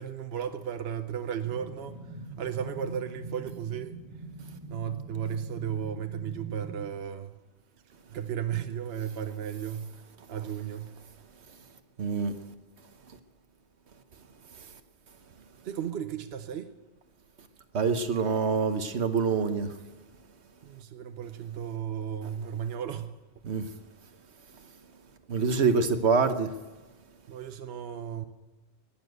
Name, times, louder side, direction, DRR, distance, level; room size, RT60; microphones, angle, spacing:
voice 1, 0.0-2.0 2.4-4.0 4.7-7.4 8.1-9.9 10.3-11.0 15.6-16.7 20.6-23.1 27.3-28.2, right 8 dB, 70° right, 1.0 m, -34 dB
sound 1, 1.4-6.8, right 2 dB, 30° right, 1.5 m, -43 dB
voice 2, 12.0-12.3 17.7-19.7 23.4-23.7 25.3-26.5, right 5 dB, 85° right, 1.3 m, -25 dB
20.0 x 7.3 x 8.0 m
omnidirectional pair, 1.1 m